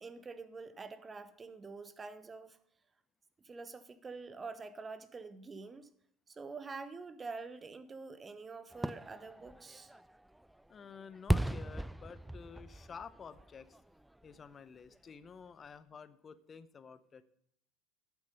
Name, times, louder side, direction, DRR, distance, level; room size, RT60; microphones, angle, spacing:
voice 1, 0.0-2.6 3.4-5.9 6.3-9.9, right 4 dB, 25° right, 12 dB, 1.1 m, -46 dB
Fireworks, 8.7-14.5 14.9-15.0, right 1 dB, 5° right, 0.4 m, -38 dB
voice 2, 10.7-13.8 14.2-17.2, left 6 dB, 30° left, 13 dB, 0.9 m, -51 dB
13.0 x 8.2 x 5.3 m, 0.69 s
figure-of-eight pair, 65°, 0 cm